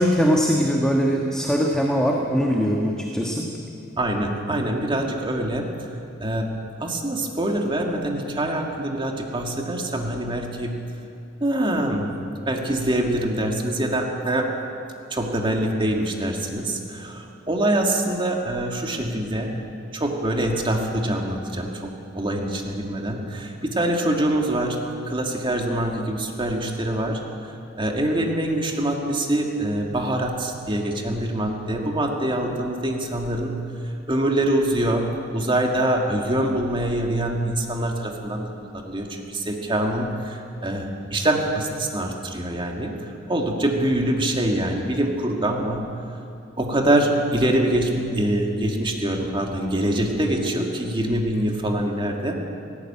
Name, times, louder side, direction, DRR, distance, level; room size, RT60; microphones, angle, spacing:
voice 1, 0.0-3.5, equal, 5° left, -1 dB, 1.5 m, -21 dB
voice 2, 4.0-5.7 6.2-6.5 6.8-10.8 11.4-12.1 12.5-14.5 15.1-19.5 19.9-21.9 22.1-24.8 25.0-27.2 27.8-33.5 34.1-35.1 35.3-45.9 46.6-52.4, right 1 dB, 25° right, 1 dB, 2.1 m, -24 dB
18.0 x 18.0 x 8.9 m, 2.7 s
head